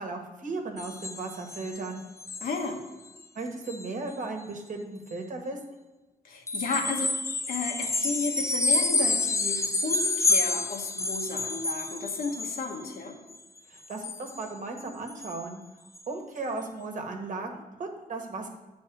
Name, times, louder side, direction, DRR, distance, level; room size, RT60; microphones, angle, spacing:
voice 1, 0.0-2.0 3.3-5.6 13.7-15.6 16.1-18.5, right 3 dB, 60° right, 3 dB, 1.5 m, -36 dB
sound 1, 0.8-1.9 2.2-2.7 3.1-3.2 3.7-3.9 6.5-13.0 13.3-14.5 14.8-14.9 15.1-15.5 16.0-16.1, left 3 dB, 20° left, 0.5 m, -29 dB
voice 2, 2.4-2.8 6.2-7.2 7.5-13.2, left 4 dB, 80° left, 1 dB, 1.3 m, -33 dB
9.1 x 4.2 x 6.1 m, 1.1 s
cardioid pair, 110°, 15 cm